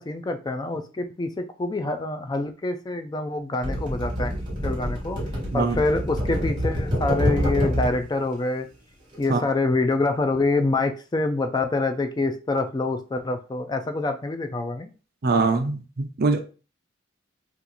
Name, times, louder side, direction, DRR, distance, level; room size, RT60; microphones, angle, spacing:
voice 1, 0.0-4.3 4.6-5.2 5.5-8.7 9.2-14.9, left 2 dB, 20° left, 6 dB, 0.3 m, -26 dB
sound 1, 3.6-8.0 9.1-9.3, equal, 25° right, 1.4 m, -26 dB
voice 2, 15.2-16.4, right 3 dB, 50° right, 6 dB, 0.5 m, -22 dB
2.9 x 2.5 x 3.7 m, 0.35 s
head